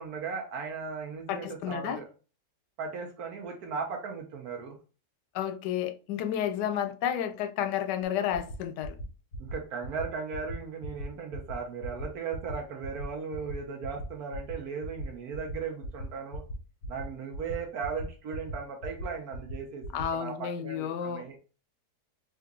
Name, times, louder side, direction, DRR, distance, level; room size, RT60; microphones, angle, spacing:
voice 1, 0.0-2.1 2.8-4.7 9.4-16.4 16.9-21.3, right 5 dB, 70° right, 1.2 m, -37 dB
voice 2, 1.3-2.0 5.3-9.0 19.9-21.2, left 9 dB, 90° left, 1.2 m, -31 dB
sound 1, 8.0-8.1 8.3-8.6 8.8-9.0 9.3-9.5 9.8-10.0 10.3-10.5 10.8-11.1 11.3-11.6 11.8-12.0 12.3-12.5 12.8-13.0 13.3-13.5 13.8-14.1 14.3-14.5 14.8-15.1 15.3-15.5 15.8-16.0 16.3-16.6 16.8-17.0 17.3-17.5 17.8-18.0 18.3-18.5 18.8-19.0 19.3-19.5 19.8-20.1, equal, 55° left, 1.8 m, -39 dB
3.8 x 2.8 x 3.6 m
omnidirectional pair, 1.8 m